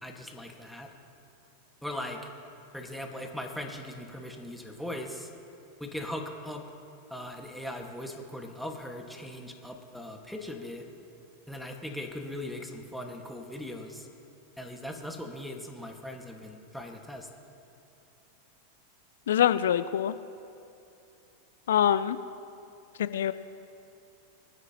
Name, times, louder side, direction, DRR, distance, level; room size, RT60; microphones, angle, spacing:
voice 1, 0.0-0.9 1.8-2.2 2.7-5.3 5.8-6.6 7.1-10.8 11.5-14.1 14.6-17.3, left 1 dB, ahead, 1 dB, 1.6 m, -39 dB
voice 2, 19.3-20.1 21.7-22.2 23.0-23.3, left 10 dB, 75° left, 13 dB, 0.3 m, -24 dB
23.5 x 9.8 x 2.9 m, 2.8 s
hypercardioid pair, 95°, 0 cm